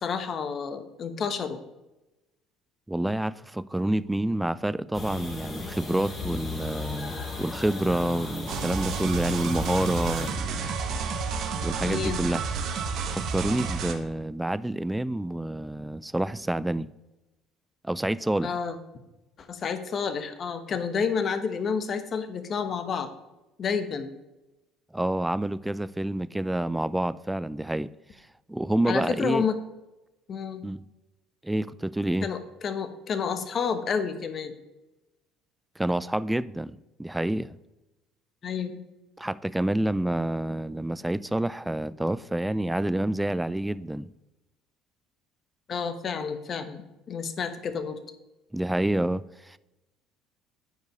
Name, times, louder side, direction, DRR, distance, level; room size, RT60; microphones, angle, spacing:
voice 1, 0.0-1.6 11.8-12.2 18.4-18.8 19.4-23.1 23.6-24.1 28.9-29.6 30.3-30.6 32.2-34.5 38.4-38.8 45.7-48.0, left 6 dB, 45° left, 1.2 m, -30 dB
voice 2, 2.9-10.7 11.6-12.4 13.1-16.9 17.8-18.5 24.9-27.9 28.5-29.5 30.6-30.8 31.4-32.3 35.8-37.6 39.2-44.1 48.5-49.6, right 1 dB, 10° right, 0.4 m, -28 dB
sound 1, 4.9-10.3, left 3 dB, 30° left, 3.3 m, -36 dB
sound 2, 8.5-13.9, right 5 dB, 60° right, 1.1 m, -30 dB
9.3 x 5.3 x 5.2 m
hypercardioid pair, 70°, 0 cm